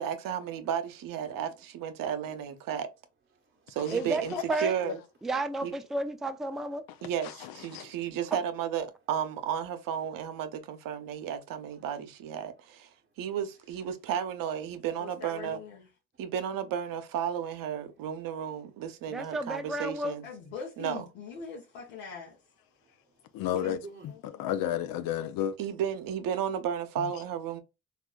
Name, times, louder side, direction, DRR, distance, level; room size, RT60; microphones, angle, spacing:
voice 1, 0.0-2.9 3.7-4.3 4.6-5.0 5.6-5.7 7.0-12.9 13.2-15.6 16.2-20.2 20.8-21.0 25.6-27.6, right 8 dB, 65° right, 0.7 m, -33 dB
voice 2, 1.2-1.6 2.3-2.4 3.3-3.8 10.6-10.7 11.8-11.9 13.0-13.1 22.8-24.1, right 4 dB, 30° right, 0.7 m, -50 dB
voice 3, 3.9-4.8 5.2-6.8 8.3-8.4 19.1-20.1, right 2 dB, ahead, 0.3 m, -32 dB
voice 4, 7.2-7.9 23.3-24.1 24.4-25.5 27.0-27.1, left 11 dB, 70° left, 0.5 m, -32 dB
voice 5, 15.0-15.9 20.2-22.4 24.1-24.5, left 5 dB, 90° left, 0.9 m, -43 dB
3.4 x 2.4 x 2.2 m
supercardioid pair, 65°, 36 cm